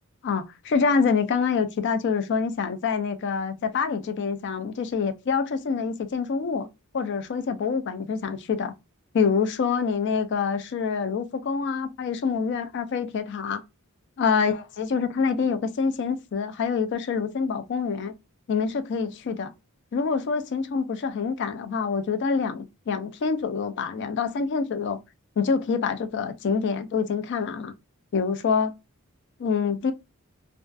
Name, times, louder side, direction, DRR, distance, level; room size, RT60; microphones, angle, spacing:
voice 1, 0.2-6.7 6.9-8.7 9.1-13.6 14.2-18.1 18.5-19.5 19.9-25.0 25.4-27.7 28.1-28.7 29.4-29.9, left 5 dB, 50° left, 0.4 m, -26 dB
2.3 x 2.2 x 2.5 m
head